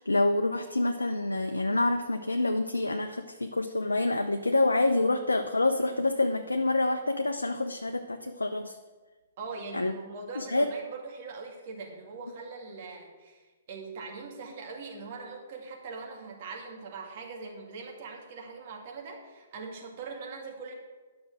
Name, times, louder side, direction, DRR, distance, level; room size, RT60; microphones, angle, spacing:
voice 1, 0.0-8.8 9.7-9.9 10.4-10.7, left 2 dB, 90° left, 6 dB, 0.6 m, -27 dB
voice 2, 9.4-20.8, right 4 dB, 50° right, 0 dB, 2.4 m, -41 dB
9.9 x 6.1 x 6.1 m, 1.3 s
figure-of-eight pair, 125°, 0 cm